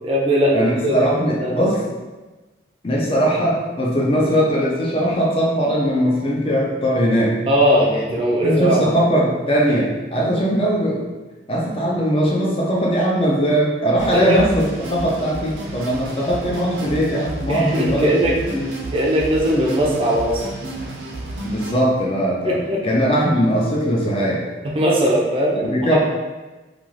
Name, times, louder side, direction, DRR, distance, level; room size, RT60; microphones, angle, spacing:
voice 1, 0.0-0.9 1.4-1.6 7.5-9.0 14.1-14.4 17.5-18.3 18.9-20.4 22.5-22.8 24.8-26.0, equal, 30° right, -3 dB, 0.4 m, -19 dB
voice 2, 0.5-1.9 2.8-7.4 8.4-11.1 11.5-18.6 21.4-24.5 25.6-26.0, equal, 30° left, -3 dB, 0.4 m, -20 dB
sound 1, 14.0-21.7, right 2 dB, 85° right, 0.6 m, -31 dB
2.5 x 2.3 x 3.1 m, 1.2 s
head